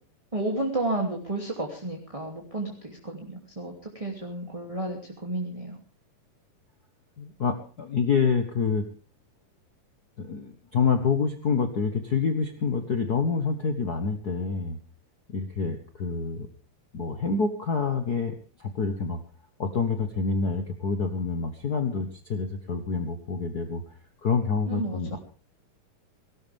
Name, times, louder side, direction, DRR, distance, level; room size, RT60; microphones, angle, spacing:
voice 1, 0.3-5.8 24.7-25.2, right 2 dB, 10° right, 1 dB, 2.4 m, -32 dB
voice 2, 7.2-8.9 10.2-14.8 15.3-16.5 16.9-19.2 19.6-23.8 24.2-25.2, left 5 dB, 65° left, 7 dB, 0.9 m, -27 dB
18.5 x 18.0 x 3.5 m, 0.37 s
omnidirectional pair, 3.8 m